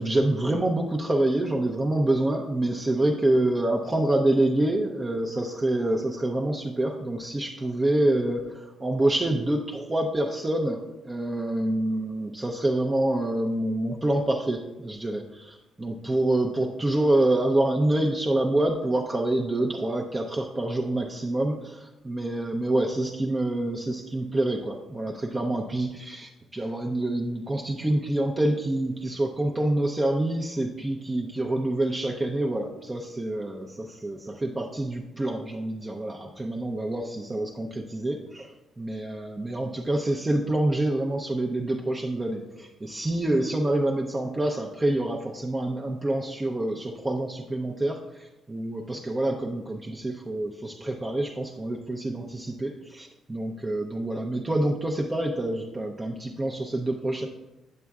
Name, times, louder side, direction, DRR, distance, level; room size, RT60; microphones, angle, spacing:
voice 1, 0.0-57.3, right 1 dB, 20° right, 1 dB, 0.6 m, -27 dB
8.1 x 7.4 x 2.4 m, 1.0 s
cardioid pair, 90°, 0 cm